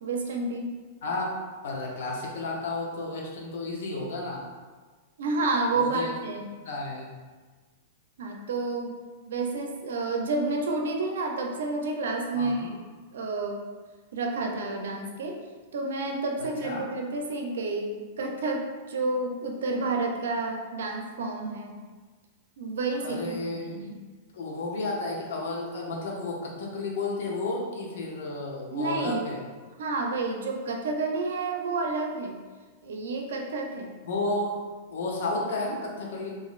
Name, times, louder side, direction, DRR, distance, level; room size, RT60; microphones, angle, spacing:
voice 1, 0.0-0.7 5.2-6.5 8.2-9.0 9.3-12.8 13.1-13.7 14.1-15.4 15.7-21.8 22.6-23.2 23.5-24.0 28.7-29.2 29.8-32.3 32.8-33.9, right 3 dB, 80° right, 2 dB, 0.4 m, -30 dB
voice 2, 1.0-1.3 1.6-4.4 5.7-6.1 6.6-7.1 12.3-12.7 16.6-16.9 23.0-23.8 24.3-29.4 34.0-34.6 34.9-36.4, left 2 dB, 70° left, -1 dB, 0.7 m, -32 dB
3.0 x 2.5 x 2.4 m, 1.4 s
hypercardioid pair, 120°, 0 cm